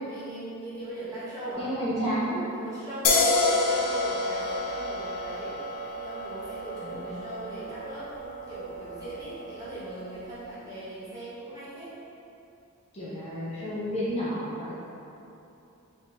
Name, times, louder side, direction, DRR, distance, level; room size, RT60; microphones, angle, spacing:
voice 1, 0.0-1.7 2.5-5.6 5.9-12.0, right 1 dB, 15° right, -11 dB, 1.2 m, -39 dB
voice 2, 1.6-2.5 6.8-7.1 12.9-14.7, equal, 30° left, -10 dB, 0.8 m, -31 dB
sound 1, 3.0-10.3, left 3 dB, 85° left, 0.6 m, -29 dB
4.7 x 2.8 x 3.5 m, 2.9 s
head